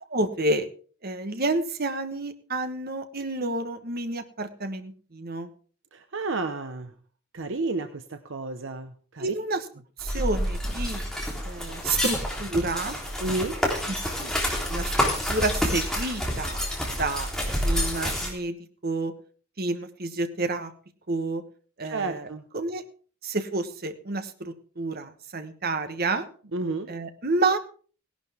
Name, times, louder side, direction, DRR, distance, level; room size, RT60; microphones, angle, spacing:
voice 1, 0.1-0.7 1.0-5.5 9.2-9.6 10.0-11.0 11.4-13.0 14.2-14.3 14.7-14.9 15.3-16.6 17.0-17.3 17.6-18.6 18.8-19.1 19.6-20.7 21.1-21.4 21.8-22.3 22.5-22.8 23.2-26.3 26.9-27.6, right 2 dB, 50° right, 9 dB, 1.3 m, -29 dB
voice 2, 5.9-6.9 7.3-9.3 13.2-13.6 21.8-22.4 26.5-26.9, right 3 dB, 65° right, 8 dB, 0.9 m, -31 dB
sound 1, 10.0-18.3, equal, 5° left, 3.5 m, -28 dB
17.5 x 11.5 x 3.6 m, 0.42 s
head